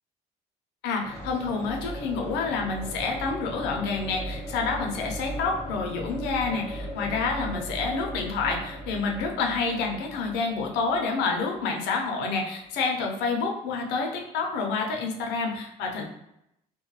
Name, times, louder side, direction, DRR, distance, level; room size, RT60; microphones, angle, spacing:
voice 1, 0.8-16.1, left 4 dB, 90° left, 1 dB, 0.6 m, -28 dB
sound 1, 1.0-12.8, equal, 15° left, 0.6 m, -38 dB
2.2 x 2.2 x 3.1 m, 0.81 s
cardioid pair, 110°, 17 cm